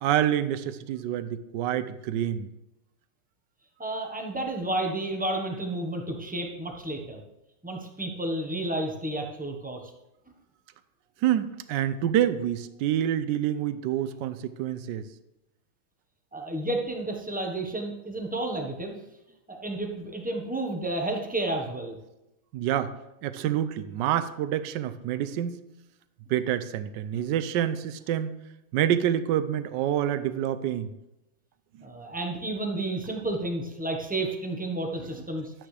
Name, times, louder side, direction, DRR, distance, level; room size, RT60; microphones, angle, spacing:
voice 1, 0.0-2.5 11.2-15.1 22.5-22.9 23.2-25.6 26.3-28.3 28.7-30.9, right 11 dB, 75° right, 12 dB, 1.0 m, -27 dB
voice 2, 3.8-7.2 7.6-9.8 16.3-19.0 19.5-21.9 31.8-35.5, right 2 dB, 10° right, 1 dB, 0.6 m, -31 dB
12.0 x 9.2 x 3.3 m, 0.92 s
omnidirectional pair, 2.4 m